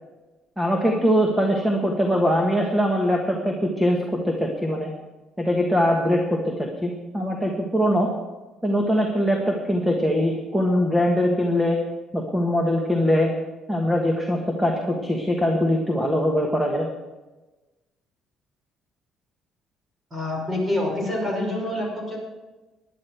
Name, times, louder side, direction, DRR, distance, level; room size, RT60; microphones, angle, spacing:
voice 1, 0.6-4.0 4.2-4.9 5.4-8.1 8.6-11.8 12.1-13.3 13.7-16.9, equal, 5° right, 1 dB, 1.5 m, -22 dB
voice 2, 20.1-22.2, left 1 dB, 20° right, -1 dB, 5.7 m, -26 dB
17.0 x 11.0 x 4.6 m, 1.1 s
cardioid pair, 145°, 0 cm